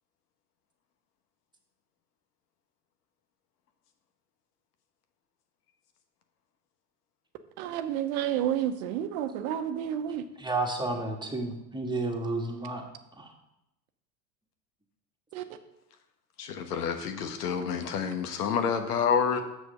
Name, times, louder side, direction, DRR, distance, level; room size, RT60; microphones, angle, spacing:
voice 1, 7.6-10.3 15.3-15.4, right 10 dB, 65° right, 9 dB, 0.9 m, -30 dB
voice 2, 10.4-12.8 13.2-13.3, right 2 dB, 10° right, 2 dB, 1.5 m, -31 dB
voice 3, 16.4-19.4, left 6 dB, 80° left, 7 dB, 1.2 m, -28 dB
7.0 x 6.4 x 5.3 m, 0.87 s
hypercardioid pair, 90°, 46 cm